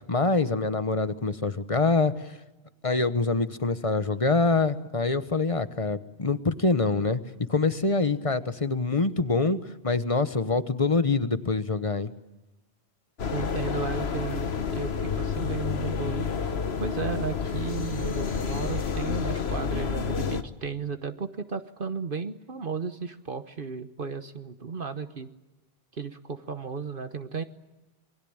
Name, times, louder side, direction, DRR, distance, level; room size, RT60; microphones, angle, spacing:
voice 1, 0.1-2.1 2.8-7.2 7.5-9.6 9.8-12.1, left 3 dB, 35° left, 12 dB, 1.1 m, -25 dB
sound 1, 13.2-20.4, left 6 dB, 85° left, 1.5 m, -29 dB
voice 2, 13.3-16.3 16.8-25.3 25.9-27.4, right 5 dB, 60° right, 9 dB, 1.3 m, -34 dB
27.0 x 21.5 x 8.8 m, 1.1 s
omnidirectional pair, 1.0 m